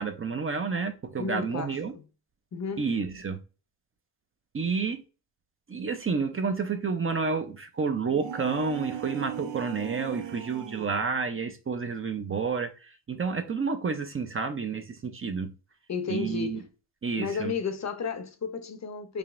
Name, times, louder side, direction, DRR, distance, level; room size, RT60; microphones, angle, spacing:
voice 1, 0.0-1.9 2.8-3.4 4.5-5.0 5.7-15.5 16.1-16.6 17.0-17.5, right 5 dB, 30° right, 0.5 m, -30 dB
voice 2, 1.2-2.0 2.5-2.9 15.9-16.7 17.2-19.2, left 5 dB, 40° left, 0.6 m, -33 dB
sound 1, 8.1-11.0, right 8 dB, 80° right, 0.6 m, -38 dB
4.9 x 2.9 x 2.5 m
cardioid pair, 105°, 43 cm